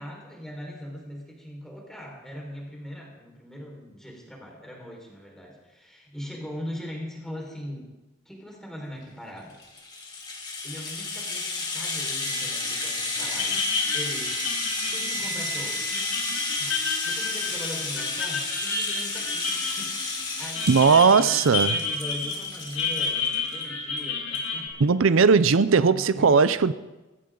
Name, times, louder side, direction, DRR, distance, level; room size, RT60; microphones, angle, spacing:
voice 1, 0.0-7.9 8.2-9.6 10.6-14.4 14.9-15.8 16.6-25.2 25.8-26.5, equal, 5° left, 4.7 m, -40 dB
Rattle (instrument), 9.5-23.6 24.0-24.1 24.3-24.5, left 3 dB, 20° left, 3.0 m, -32 dB
Wind instrument woodwind instrument, 12.1-18.1, right 8 dB, 45° right, 2.6 m, -40 dB
sound 1, 12.6-12.9 13.2-24.7, left 4 dB, 90° left, 7.9 m, -31 dB
voice 2, 20.7-21.8 24.8-26.7, right 5 dB, 80° right, 0.6 m, -18 dB
23.0 x 16.0 x 3.9 m
head